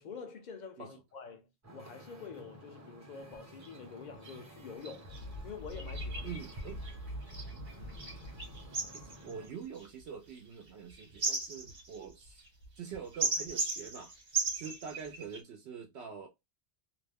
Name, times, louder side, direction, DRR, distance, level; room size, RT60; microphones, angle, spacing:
voice 1, 0.0-5.1 5.4-6.4, left 5 dB, 50° left, 0.6 m, -47 dB
Wind / Ocean, 1.6-9.5, equal, 20° right, 0.6 m, -53 dB
sound 1, 3.6-3.8 4.2-4.4 4.8-15.4, right 3 dB, 50° right, 1.1 m, -38 dB
voice 2, 6.2-6.8 8.9-12.5 12.8-14.1 14.6-16.3, right 6 dB, 75° right, 0.8 m, -45 dB
2.5 x 2.1 x 3.4 m
omnidirectional pair, 1.1 m